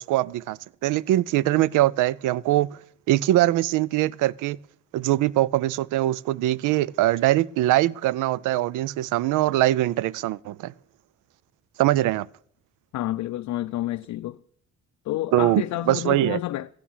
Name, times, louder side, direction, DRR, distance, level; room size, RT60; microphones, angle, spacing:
voice 1, 0.0-2.8 3.1-4.6 4.9-10.7 11.8-12.3 15.3-16.4, right 15 dB, 85° right, 0.5 m, -22 dB
voice 2, 12.9-14.4 15.1-16.7, left 15 dB, 70° left, 0.5 m, -29 dB
14.5 x 8.5 x 7.3 m
cardioid pair, 90°, 30 cm